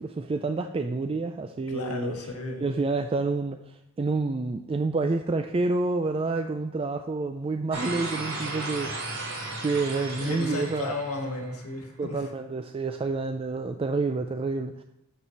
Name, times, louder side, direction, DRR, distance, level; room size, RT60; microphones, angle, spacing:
voice 1, 0.0-2.1 2.6-9.2 9.6-10.9 12.0-14.8, right 3 dB, 25° right, 6 dB, 0.3 m, -28 dB
voice 2, 1.7-2.7 10.2-12.3, left 2 dB, 85° left, 3 dB, 1.6 m, -34 dB
sound 1, 7.7-11.8, right 2 dB, 75° right, 3.2 m, -35 dB
7.3 x 6.6 x 4.5 m, 0.87 s
head